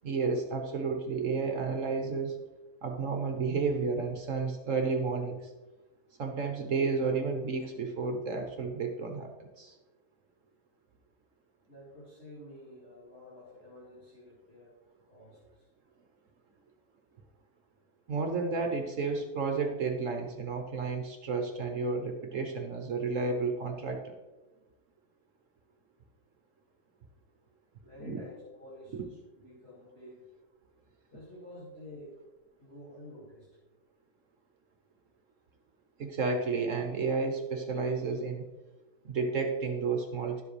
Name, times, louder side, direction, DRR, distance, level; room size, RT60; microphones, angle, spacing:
voice 1, 0.0-2.4 2.8-5.4 6.2-9.7 18.1-24.1 28.0-28.2 28.9-29.0 36.0-38.5 39.0-40.4, right 4 dB, 55° right, 4 dB, 1.1 m, -31 dB
voice 2, 11.7-14.8 15.1-15.6 27.8-30.2 31.1-32.2 32.6-33.6, left 1 dB, 40° left, -8 dB, 2.4 m, -50 dB
11.5 x 7.5 x 3.2 m, 1.1 s
omnidirectional pair, 1.8 m